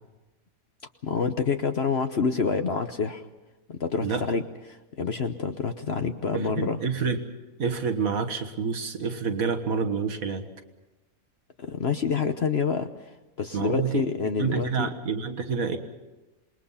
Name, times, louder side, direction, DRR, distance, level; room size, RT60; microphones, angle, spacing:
voice 1, 1.0-3.2 3.7-4.4 4.7-6.8 11.6-12.9 13.4-14.9, left 5 dB, 50° left, 7 dB, 1.1 m, -27 dB
voice 2, 6.3-7.2 7.6-10.5 13.5-14.0 14.4-15.8, right 5 dB, 70° right, 7 dB, 2.0 m, -28 dB
27.5 x 21.0 x 5.7 m, 1.1 s
omnidirectional pair, 1.5 m